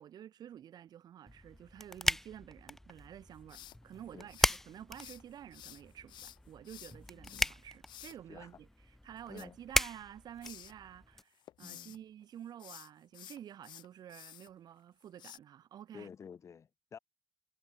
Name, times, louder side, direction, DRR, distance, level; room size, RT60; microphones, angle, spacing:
voice 1, 0.0-16.1, right 10 dB, 60° right, 7.3 m, -50 dB
sound 1, 1.3-11.2, left 1 dB, 5° left, 0.5 m, -38 dB
sound 2, 3.5-5.2 5.5-8.2 9.2-10.1 10.4-10.7 11.2-12.0 12.5-14.5 15.2-15.4, left 12 dB, 75° left, 2.8 m, -52 dB
voice 2, 7.1-7.4 8.3-8.5 9.3-9.6 11.6-12.0 15.9-17.0, left 7 dB, 40° left, 6.8 m, -51 dB
cardioid pair, 145°, 8 cm